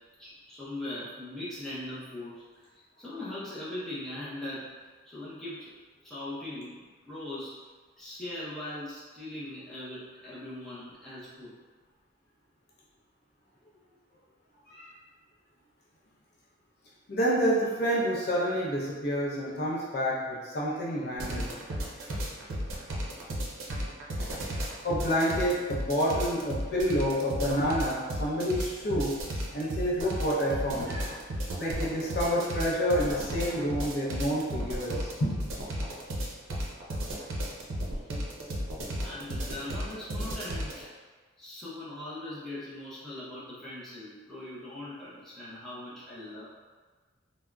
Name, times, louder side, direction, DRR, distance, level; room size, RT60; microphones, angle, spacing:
voice 1, 0.2-2.7 3.0-4.7 5.0-5.7 6.0-7.6 8.0-11.5 39.0-40.9 41.4-46.4, left 1 dB, ahead, -11 dB, 0.6 m, -40 dB
voice 2, 17.1-21.6 24.8-29.2 29.5-31.2 31.6-35.3, equal, 55° left, -6 dB, 0.6 m, -28 dB
sound 1, 21.2-40.8, equal, 90° right, 0.5 m, -33 dB
3.5 x 2.0 x 2.2 m, 1.4 s
head